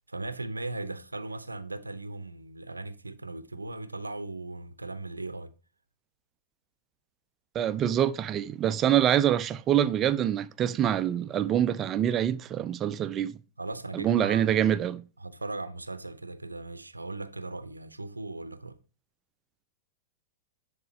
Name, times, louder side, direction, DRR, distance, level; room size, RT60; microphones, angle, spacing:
voice 1, 0.1-5.5 13.6-14.6 15.2-18.8, right 2 dB, 90° right, 0.6 m, -38 dB
voice 2, 7.5-13.4 13.9-15.0, right 10 dB, 30° right, 0.4 m, -25 dB
10.5 x 3.7 x 4.1 m
figure-of-eight pair, 100°, 0 cm